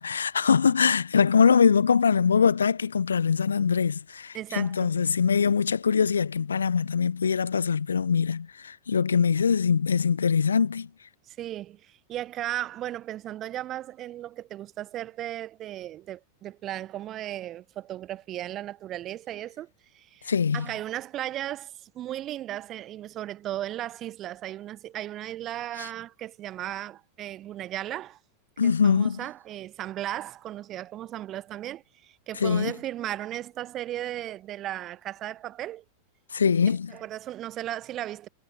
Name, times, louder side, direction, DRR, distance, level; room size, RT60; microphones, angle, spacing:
voice 1, 0.0-10.9 20.3-20.7 25.8-25.9 28.6-29.2 32.4-32.7 36.3-36.9, left 6 dB, 70° left, 1.2 m, -23 dB
voice 2, 4.3-4.9 11.3-19.7 19.9-28.2 28.6-35.8 36.7-38.3, right 13 dB, 30° right, 1.2 m, -36 dB
figure-of-eight pair, 90°, 0 cm